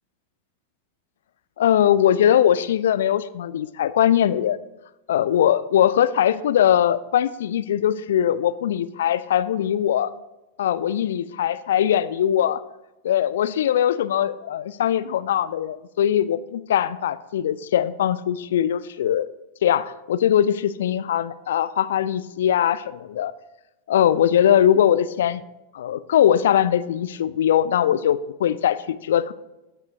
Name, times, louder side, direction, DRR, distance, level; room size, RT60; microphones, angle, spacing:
voice 1, 1.6-4.6 5.1-10.1 10.6-12.6 13.0-19.3 19.6-23.3 23.9-25.4 25.7-29.3, left 10 dB, 60° left, 15 dB, 0.3 m, -21 dB
15.5 x 5.5 x 2.7 m, 0.98 s
figure-of-eight pair, 90°, 0 cm